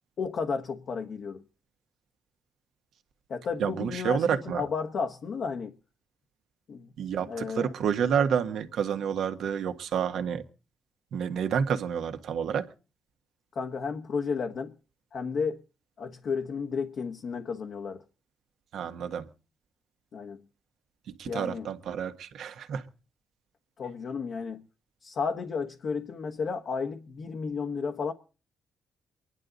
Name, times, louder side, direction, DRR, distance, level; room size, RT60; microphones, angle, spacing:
voice 1, 0.2-1.4 3.3-5.7 6.7-6.9 7.2-7.7 13.5-14.7 15.1-15.6 16.0-18.0 20.1-20.4 21.3-21.7 23.8-24.6 25.0-28.1, left 5 dB, 55° left, 1.2 m, -33 dB
voice 2, 3.6-4.6 7.0-10.4 11.1-12.7 18.7-19.3 21.2-22.8, right 7 dB, 70° right, 1.5 m, -29 dB
24.0 x 10.5 x 4.0 m
cardioid pair, 90°, 0 cm